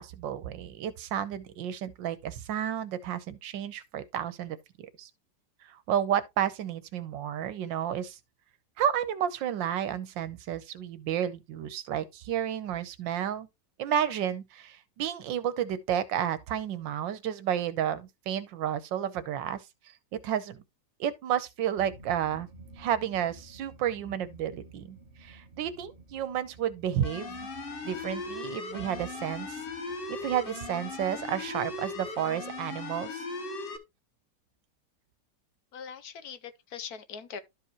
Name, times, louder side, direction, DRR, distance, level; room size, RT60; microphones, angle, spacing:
voice 1, 0.0-5.1 5.6-8.2 8.8-13.5 13.8-19.6 20.1-20.6 21.0-22.5 22.8-27.5 27.8-29.6 30.1-33.3, right 10 dB, 85° right, 1.6 m, -31 dB
sound 1, 21.8-32.7, right 2 dB, 35° right, 1.4 m, -53 dB
sound 2, 27.0-33.8, left 3 dB, 40° left, 1.0 m, -38 dB
voice 2, 35.7-37.4, left 7 dB, 65° left, 1.1 m, -41 dB
12.5 x 4.9 x 2.9 m
omnidirectional pair, 1.9 m